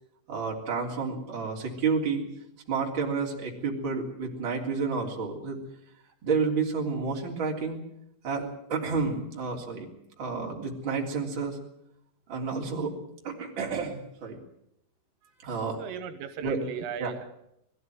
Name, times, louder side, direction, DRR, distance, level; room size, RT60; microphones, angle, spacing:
voice 1, 0.3-2.3 2.7-5.6 6.2-7.8 8.2-9.9 10.2-11.6 12.3-12.9 13.2-14.4 15.4-15.8 16.4-16.6 17.0-17.1, right 5 dB, 25° right, -1 dB, 3.4 m, -30 dB
voice 2, 15.8-17.3, right 7 dB, 80° right, 9 dB, 3.7 m, -37 dB
21.0 x 15.0 x 9.4 m, 0.80 s
omnidirectional pair, 5.8 m